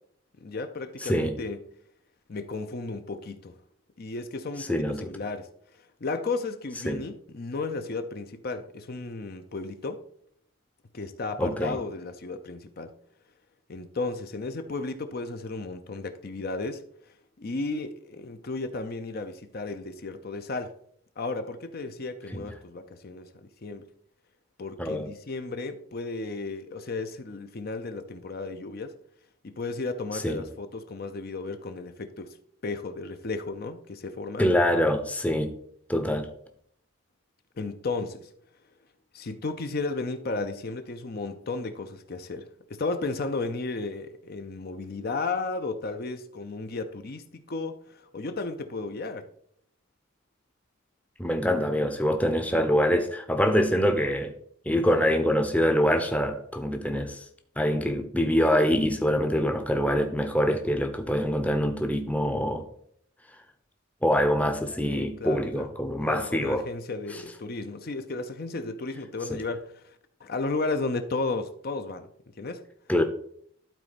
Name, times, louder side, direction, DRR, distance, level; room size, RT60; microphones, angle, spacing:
voice 1, 0.4-1.7 2.3-3.5 4.0-10.0 10.9-13.0 13.7-20.7 21.2-23.9 24.6-29.0 29.4-32.4 32.6-34.5 37.6-38.3 39.1-49.3 64.8-65.7 66.0-70.0 70.2-72.1 72.4-72.7, left 3 dB, 45° left, 0.6 m, -34 dB
voice 2, 1.0-1.4 4.6-5.1 6.8-7.0 11.4-11.8 22.3-22.4 24.8-25.1 30.1-30.4 34.4-35.6 35.9-36.3 51.2-54.3 54.7-57.2 57.6-62.6 64.0-66.6 69.3-69.4 72.9-73.0, equal, 5° left, 0.7 m, -25 dB
12.0 x 4.3 x 4.1 m
head